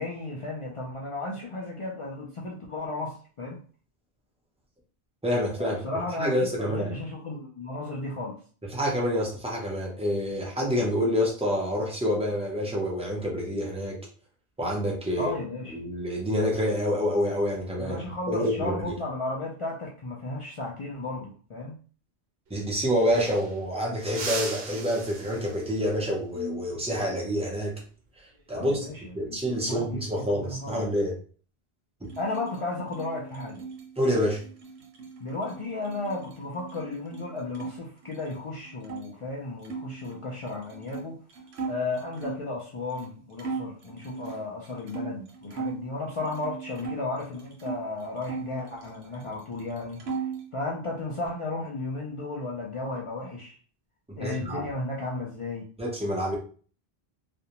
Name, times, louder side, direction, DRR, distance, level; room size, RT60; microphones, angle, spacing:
voice 1, 0.0-3.6 5.6-6.3 6.6-8.4 15.2-15.8 17.8-21.8 28.5-29.0 29.3-29.4 29.7-30.8 32.2-33.6 35.2-41.2 41.6-53.6 54.2-55.7, left 2 dB, 55° left, -3 dB, 0.3 m, -34 dB
voice 2, 5.2-5.8 6.2-6.9 8.6-14.0 14.6-15.3 15.7-18.0 18.3-18.9 22.5-27.8 28.2-28.9 29.1-31.2 32.0-32.1 34.0-34.4 54.1-54.7 55.8-56.4, equal, 10° right, -3 dB, 0.4 m, -27 dB
sound 1, 22.5-22.6 22.8-23.7 24.1-25.9 28.3-28.6 30.0-30.5, right 4 dB, 55° right, 0.6 m, -38 dB
sound 2, 32.0-37.7 38.0-39.1 39.6-42.5 43.0-43.1 43.4-45.8 46.2-47.8 48.2-49.3 49.6-50.5, right 5 dB, 85° right, 0.9 m, -38 dB
2.5 x 2.1 x 2.8 m, 0.42 s
omnidirectional pair, 1.1 m